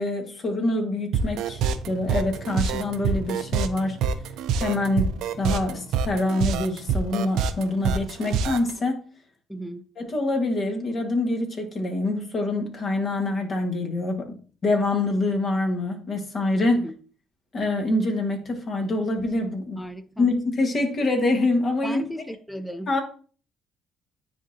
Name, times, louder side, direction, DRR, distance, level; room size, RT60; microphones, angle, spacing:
voice 1, 0.0-1.6 1.9-4.0 4.6-9.0 10.0-14.3 14.6-16.9 17.5-19.9 20.2-22.0 22.9-23.0, left 2 dB, 40° left, 1.6 m, -25 dB
sound 1, 1.1-8.7, right 6 dB, 75° right, 0.5 m, -26 dB
voice 2, 9.5-9.8 16.7-17.0 19.8-20.3 21.8-22.9, equal, 5° left, 0.6 m, -35 dB
9.8 x 3.7 x 2.8 m
cardioid pair, 100°, 0 cm